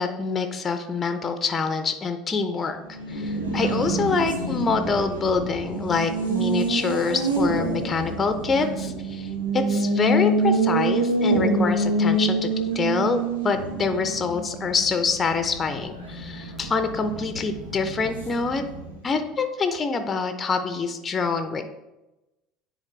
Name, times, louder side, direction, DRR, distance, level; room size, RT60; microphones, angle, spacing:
voice 1, 0.0-2.8 3.1-12.5 12.7-18.6 19.0-21.6, left 4 dB, 25° left, 8 dB, 0.6 m, -26 dB
Race car auto racing, 2.9-19.1, right 2 dB, 80° right, 1.0 m, -26 dB
9.6 x 4.1 x 3.1 m, 0.98 s
figure-of-eight pair, 65°, 0 cm